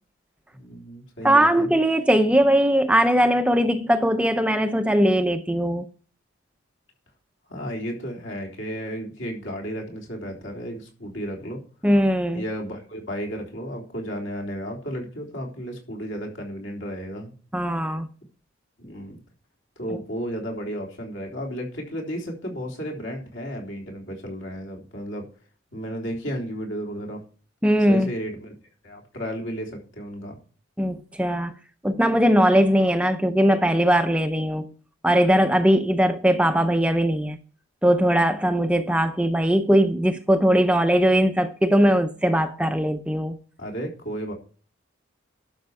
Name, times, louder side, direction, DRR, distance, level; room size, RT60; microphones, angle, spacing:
voice 1, 0.5-1.7 7.5-11.6 12.3-17.3 18.8-19.2 19.8-25.3 25.7-27.2 27.8-28.5 28.8-30.4 43.6-44.3, equal, 65° left, 3.6 m, -33 dB
voice 2, 1.2-5.9 11.8-12.4 17.5-18.1 27.6-28.1 30.8-31.5 31.8-34.7 35.0-37.4 37.8-43.3, equal, 5° right, 0.5 m, -20 dB
12.0 x 6.3 x 4.8 m
head